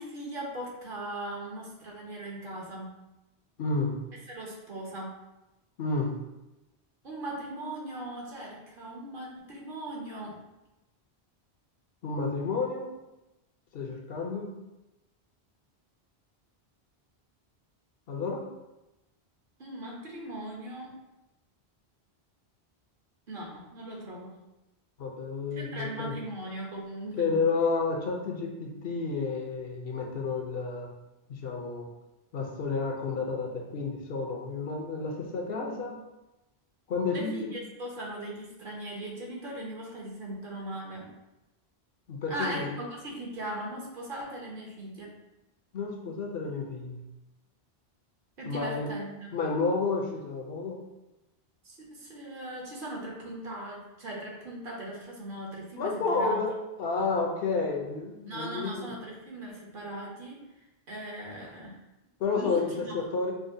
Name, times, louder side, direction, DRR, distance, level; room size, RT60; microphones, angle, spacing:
voice 1, 0.0-2.9 4.3-5.1 7.0-10.4 19.6-20.9 23.3-24.3 25.5-27.5 37.1-41.1 42.3-45.1 48.4-49.3 51.6-56.4 58.3-61.8 62.4-62.9, right 1 dB, 55° right, -2 dB, 1.0 m, -39 dB
voice 2, 3.6-4.0 5.8-6.1 12.0-12.9 13.7-14.5 18.1-18.4 25.0-26.1 27.2-30.9 31.3-31.9 32.3-36.0 36.9-37.5 42.1-42.7 45.7-47.0 48.4-48.9 49.3-50.8 55.7-58.9 62.2-63.3, left 4 dB, 70° left, 0 dB, 0.8 m, -30 dB
4.8 x 2.1 x 2.6 m, 0.98 s
omnidirectional pair, 1.1 m